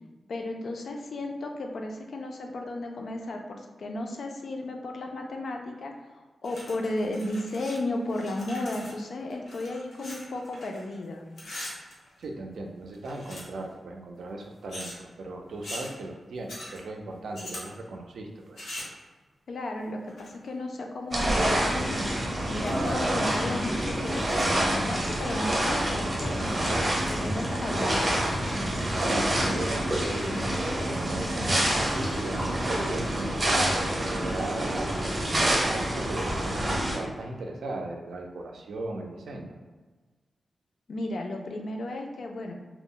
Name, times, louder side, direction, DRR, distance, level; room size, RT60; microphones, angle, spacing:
voice 1, 0.3-5.9 6.4-11.3 19.5-22.1 22.5-26.8 27.1-28.2 40.9-42.5, left 2 dB, 65° left, 2 dB, 0.4 m, -34 dB
sound 1, 6.4-7.8 8.0-11.0 11.3-12.5 12.9-13.7 14.7-15.0 15.6-15.9 16.5-16.8 17.3-17.7 18.6-19.0 20.1-20.5 21.2-21.8 22.2-22.3 22.6-22.9 23.3-23.4 24.1-24.5, left 1 dB, 85° left, 0.8 m, -42 dB
voice 2, 12.2-18.7 28.7-39.5, right 2 dB, 85° right, 2 dB, 0.4 m, -37 dB
sound 2, 21.1-37.0, right 1 dB, 30° right, 0.7 m, -27 dB
sound 3, 26.2-33.7, equal, 10° left, 0.5 m, -39 dB
2.2 x 2.0 x 3.7 m, 1.3 s
wide cardioid pair, 145°, 0 cm